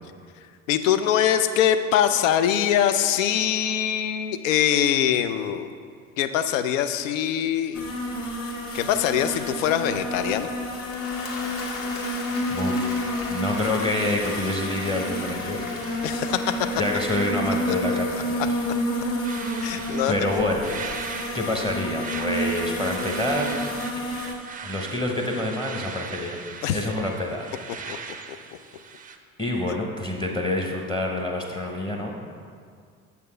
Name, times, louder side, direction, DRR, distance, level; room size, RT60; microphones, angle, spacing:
voice 1, 0.7-5.7 6.2-7.8 8.7-10.5 16.0-16.4 19.6-20.1 26.6-26.8, left 10 dB, 65° left, 10 dB, 0.6 m, -23 dB
sound 1, 7.7-24.3, equal, 35° left, 1.7 m, -30 dB
Applause / Crowd, 10.5-19.7, left 3 dB, 50° left, 1.4 m, -39 dB
voice 2, 12.5-13.0 13.3-16.1 16.8-18.7 19.8-20.7 21.3-23.5 24.6-26.4 26.7-27.5 27.8-28.0 29.4-32.3, left 1 dB, 10° left, 1 dB, 0.8 m, -27 dB
sound 2, 19.2-29.2, right 5 dB, 20° right, 0.5 m, -38 dB
8.4 x 6.8 x 3.2 m, 2.2 s
figure-of-eight pair, 60°, 42 cm